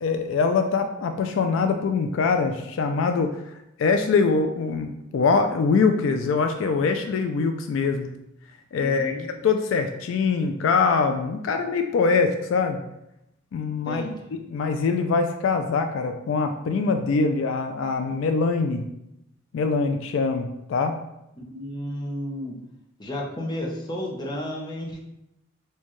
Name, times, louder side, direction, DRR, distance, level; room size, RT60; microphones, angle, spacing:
voice 1, 0.0-3.4 3.8-8.1 8.7-12.8 13.5-14.0 14.3-18.8 19.5-21.0, left 4 dB, 70° left, 6 dB, 0.3 m, -23 dB
voice 2, 8.8-9.3 13.8-14.2 21.4-22.5 23.0-25.0, left 1 dB, 20° left, -2 dB, 0.6 m, -32 dB
4.3 x 2.3 x 3.0 m, 0.86 s
head